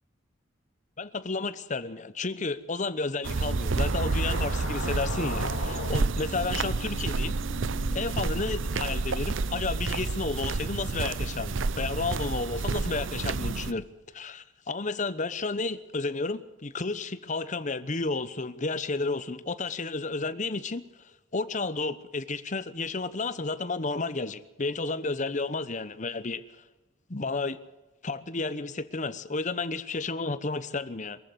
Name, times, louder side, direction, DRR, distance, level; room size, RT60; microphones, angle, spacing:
voice 1, 1.0-7.4 7.9-13.8 14.1-26.4 27.1-27.6 28.0-31.2, left 3 dB, 40° left, 14 dB, 1.0 m, -32 dB
sound 1, 3.2-13.7, right 3 dB, 80° right, 0.7 m, -29 dB
sound 2, 3.7-8.1, left 2 dB, 70° left, 3.0 m, -40 dB
23.0 x 14.5 x 8.0 m, 1.1 s
head